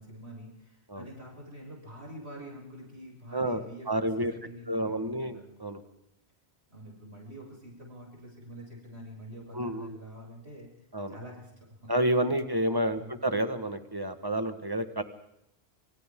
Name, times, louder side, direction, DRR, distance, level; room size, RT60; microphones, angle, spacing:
voice 1, 0.0-3.9 4.2-5.4 6.7-10.7 11.1-11.9 13.0-13.1, equal, 85° right, -3 dB, 7.7 m, -46 dB
voice 2, 3.3-4.3 4.7-5.8 9.5-10.0 10.9-11.1 11.9-15.0, right 1 dB, 20° right, 8 dB, 1.6 m, -29 dB
27.5 x 27.0 x 3.8 m, 0.83 s
omnidirectional pair, 1.1 m